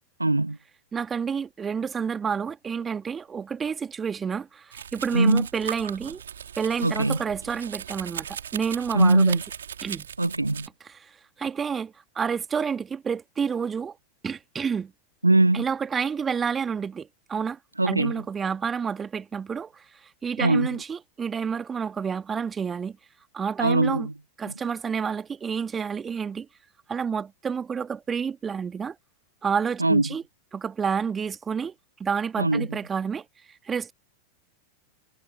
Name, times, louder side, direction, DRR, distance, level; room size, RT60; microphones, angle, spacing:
voice 1, 0.2-0.6 5.1-5.5 6.8-7.2 8.9-9.4 10.2-10.7 15.2-15.6 17.8-18.2 20.4-20.7 23.6-24.1 29.8-30.1 32.4-32.8, right 2 dB, 85° right, 1.3 m, -21 dB
voice 2, 0.9-6.2 6.6-9.4 9.8-10.1 10.9-11.1 11.4-14.0 14.2-14.9 15.5-17.6 17.8-19.8 20.2-23.0 23.3-24.1 24.4-26.5 26.9-29.0 29.4-30.2 30.5-31.7 32.0-33.3 33.7-33.9, right 6 dB, 20° right, 2.1 m, -29 dB
Domestic sounds home sounds, 4.7-10.7, right 8 dB, 65° right, 2.9 m, -38 dB
figure-of-eight pair, 90°, 0 cm